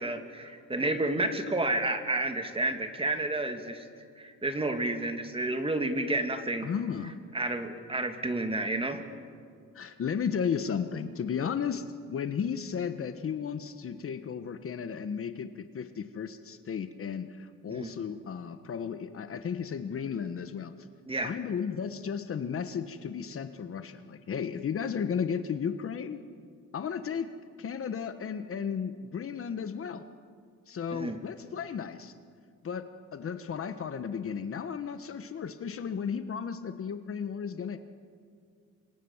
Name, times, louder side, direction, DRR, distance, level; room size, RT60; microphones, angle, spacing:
voice 1, 0.0-3.9 4.2-6.7 7.3-9.0 17.7-17.9 21.1-21.3 30.9-31.2, right 2 dB, 20° right, 6 dB, 2.5 m, -30 dB
voice 2, 6.6-7.2 9.7-20.7 21.2-26.2 26.7-27.3 27.6-30.0 30.7-32.1 32.6-32.8 33.1-37.8, left 7 dB, 45° left, 9 dB, 1.3 m, -34 dB
27.5 x 23.5 x 7.3 m, 2.2 s
cardioid pair, 105°, 30 cm